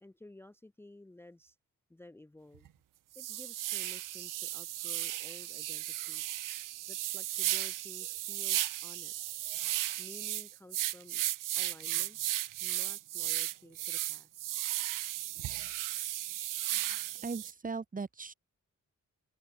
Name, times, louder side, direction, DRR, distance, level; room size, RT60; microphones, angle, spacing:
voice 1, 0.0-1.6 1.9-2.7 3.1-6.4 6.9-9.3 10.0-11.2 11.5-12.2 12.6-14.5, left 2 dB, 5° left, 0.7 m, -54 dB
sound 1, 2.5-2.7 3.1-17.5, right 14 dB, 75° right, 0.5 m, -35 dB
sound 2, 3.6-10.0, left 4 dB, 35° left, 7.9 m, -77 dB
voice 2, 17.2-18.3, right 4 dB, 25° right, 1.3 m, -38 dB
wide cardioid pair, 170°, 32 cm